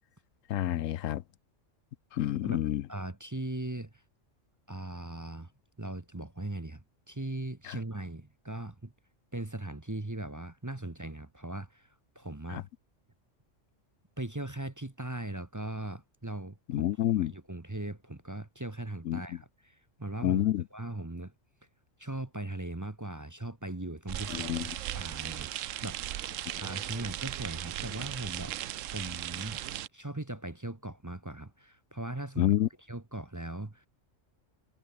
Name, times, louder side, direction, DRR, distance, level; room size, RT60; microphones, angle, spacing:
voice 1, 0.5-1.2 2.1-2.8 7.7-7.8 12.5-12.6 16.7-17.3 19.1-19.2 20.2-20.6 24.3-24.7 32.4-32.7, left 13 dB, 85° left, 1.0 m, -28 dB
voice 2, 2.9-3.9 4.7-5.5 5.8-8.9 9.3-12.7 14.2-16.9 17.2-20.4 20.7-21.3 22.0-24.7 24.9-26.2 26.6-28.6 28.8-29.6 29.9-32.5 32.9-33.9, right 2 dB, 15° right, 1.0 m, -39 dB
sound 1, 24.1-29.9, right 12 dB, 90° right, 1.0 m, -37 dB
omnidirectional pair, 1.3 m